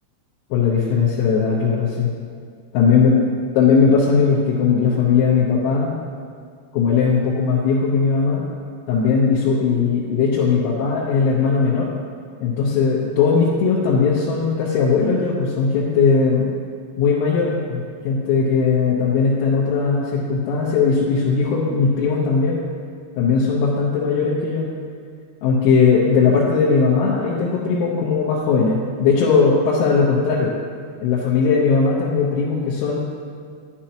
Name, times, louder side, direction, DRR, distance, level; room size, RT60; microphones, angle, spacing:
voice 1, 0.5-2.1 2.7-3.2 3.5-5.9 6.7-8.4 8.9-11.9 12.4-16.5 17.0-22.7 23.2-24.7 25.4-30.5 31.0-33.0, left 5 dB, 90° left, -6 dB, 3.7 m, -18 dB
10.0 x 10.0 x 2.9 m, 2.2 s
omnidirectional pair, 5.8 m